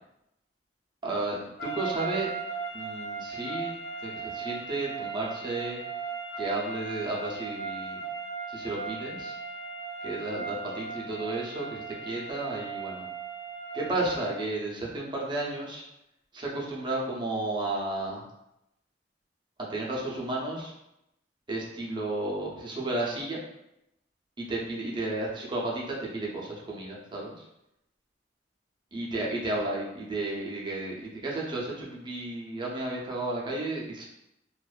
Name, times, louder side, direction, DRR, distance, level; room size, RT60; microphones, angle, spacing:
voice 1, 1.0-2.3 2.7-3.7 4.0-5.8 6.3-8.0 8.5-9.4 10.0-13.0 13.7-15.8 16.3-18.2 19.6-20.7 21.5-23.4 24.4-27.4 28.9-34.1, right 2 dB, 25° right, -3 dB, 0.5 m, -33 dB
sound 1, 1.6-14.4, right 5 dB, 60° left, 0.8 m, -37 dB
2.4 x 2.2 x 2.3 m, 0.85 s
head